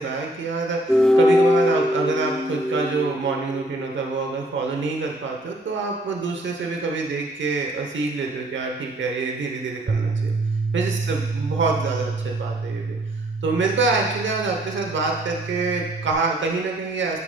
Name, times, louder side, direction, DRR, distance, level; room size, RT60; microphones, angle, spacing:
voice 1, 0.0-10.3 10.7-13.0 13.4-17.2, right 4 dB, 80° right, 1 dB, 0.8 m, -26 dB
sound 1, 0.9-4.1, left 1 dB, 5° left, 0.3 m, -21 dB
Bass guitar, 9.9-16.1, right 4 dB, 45° right, 0.7 m, -28 dB
10.5 x 6.9 x 2.2 m, 1.1 s
wide cardioid pair, 110°, 19 cm